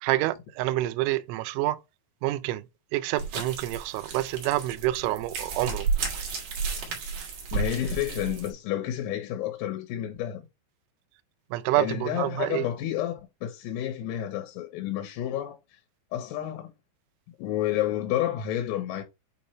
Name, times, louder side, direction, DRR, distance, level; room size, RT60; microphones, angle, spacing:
voice 1, 0.0-1.8 2.2-2.6 2.9-5.9 11.5-12.6, right 16 dB, 85° right, 2.7 m, -27 dB
sound 1, 3.2-8.5, right 4 dB, 55° right, 2.5 m, -32 dB
voice 2, 7.5-10.4 11.8-15.6 16.1-16.7 17.4-19.0, left 11 dB, 85° left, 3.7 m, -30 dB
8.2 x 3.1 x 4.2 m
omnidirectional pair, 5.9 m